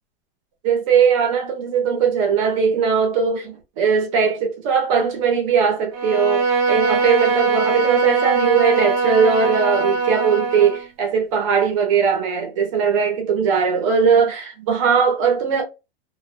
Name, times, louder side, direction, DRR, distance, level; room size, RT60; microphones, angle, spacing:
voice 1, 0.6-15.6, right 6 dB, 35° right, 0.7 m, -19 dB
Bowed string instrument, 5.9-10.9, right 4 dB, 75° right, 0.7 m, -21 dB
2.3 x 2.2 x 2.5 m
supercardioid pair, 175°, 31 cm